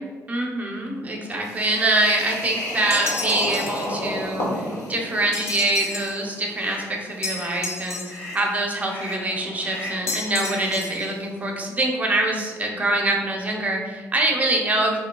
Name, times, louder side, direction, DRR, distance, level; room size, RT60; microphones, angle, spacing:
voice 1, 0.3-15.0, right 2 dB, 25° right, 0 dB, 0.7 m, -24 dB
sound 1, 1.4-11.2, left 1 dB, 75° left, 1.1 m, -34 dB
sound 2, 2.9-3.9 5.3-6.2 7.2-8.4 10.1-11.1, left 3 dB, 50° left, 0.5 m, -32 dB
sound 3, 5.0-5.3 5.8-6.1 6.5-6.9 7.3-7.7 8.1-8.4 8.8-9.3 9.6-10.1 10.4-10.8, left 1 dB, 35° left, 1.4 m, -38 dB
4.9 x 3.0 x 2.3 m, 1.5 s
cardioid pair, 90°, 6 cm